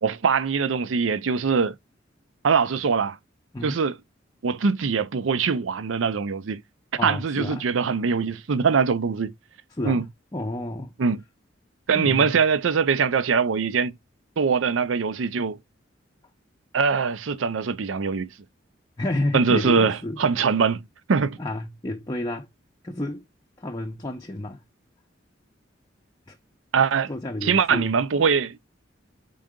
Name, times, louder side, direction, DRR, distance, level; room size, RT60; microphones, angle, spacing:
voice 1, 0.0-1.7 2.4-3.2 3.6-4.0 4.4-6.6 7.0-9.3 9.8-10.0 11.0-11.2 11.9-14.0 14.4-15.6 16.7-18.3 19.3-20.8 21.1-21.4 26.7-27.1 27.4-28.6, right 5 dB, 80° right, 0.5 m, -22 dB
voice 2, 7.0-7.7 9.7-10.0 10.3-10.9 11.9-12.4 19.0-20.2 21.4-22.5 22.8-23.2 23.6-24.6 26.3-26.4 27.1-28.0, left 1 dB, 20° left, 0.5 m, -30 dB
3.9 x 3.7 x 3.6 m
head